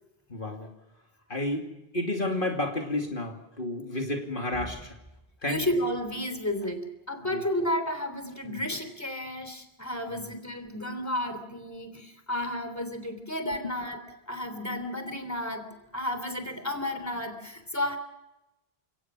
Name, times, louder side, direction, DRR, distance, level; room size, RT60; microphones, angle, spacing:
voice 1, 0.3-0.7 1.3-5.0 5.4-5.7 7.3-7.4 8.4-8.6 10.1-10.3 13.6-13.7, left 1 dB, 55° left, 2 dB, 2.9 m, -31 dB
voice 2, 5.4-18.0, left 1 dB, 15° left, 8 dB, 3.4 m, -32 dB
30.0 x 18.0 x 6.2 m, 0.91 s
omnidirectional pair, 1.0 m